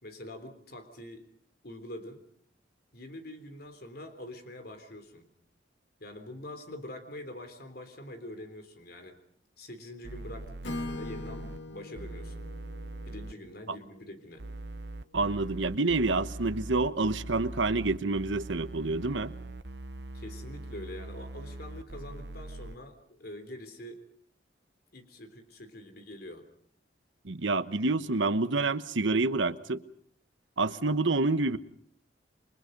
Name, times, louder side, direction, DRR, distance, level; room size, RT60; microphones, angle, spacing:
voice 1, 0.0-1.3 1.6-2.2 2.9-5.3 6.0-9.2 9.6-12.4 13.1-14.4 20.1-24.0 24.9-26.5, left 1 dB, 55° left, 3.5 m, -45 dB
sound 1, 10.0-11.6 12.0-13.3 14.4-22.8, right 1 dB, 65° right, 1.0 m, -42 dB
Acoustic guitar / Strum, 10.6-14.6, left 2 dB, 75° left, 2.1 m, -42 dB
voice 2, 15.1-19.3 27.2-29.8 30.6-31.6, right 3 dB, 85° right, 1.2 m, -28 dB
29.0 x 24.0 x 5.3 m
head